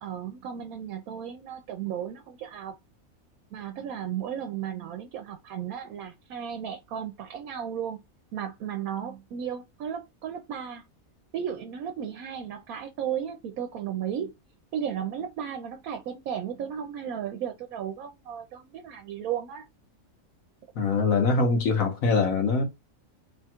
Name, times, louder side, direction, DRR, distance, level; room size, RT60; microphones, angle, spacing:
voice 1, 0.0-2.8 3.5-8.0 8.3-10.8 11.3-14.3 14.7-19.6, right 9 dB, 85° right, 1.1 m, -34 dB
voice 2, 20.7-22.6, left 4 dB, 75° left, 1.5 m, -23 dB
3.3 x 2.4 x 4.3 m
omnidirectional pair, 1.5 m